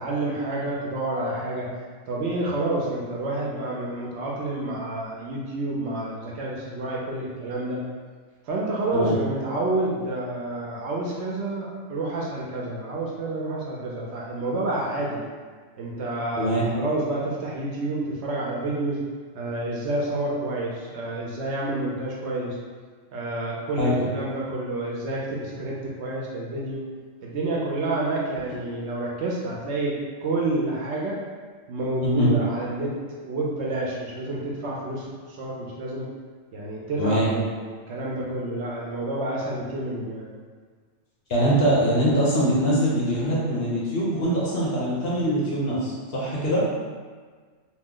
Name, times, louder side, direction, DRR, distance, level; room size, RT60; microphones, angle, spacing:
voice 1, 0.0-1.7 2.1-7.8 8.5-15.2 15.8-19.0 19.3-22.6 23.1-26.8 27.2-30.0 30.2-31.2 31.7-33.0 33.2-36.1 36.5-40.3 46.4-46.5, right 2 dB, 65° right, -4 dB, 0.8 m, -29 dB
voice 2, 37.0-37.3 41.3-46.6, equal, 55° left, -6 dB, 0.8 m, -23 dB
2.8 x 2.0 x 3.6 m, 1.5 s
omnidirectional pair, 1.3 m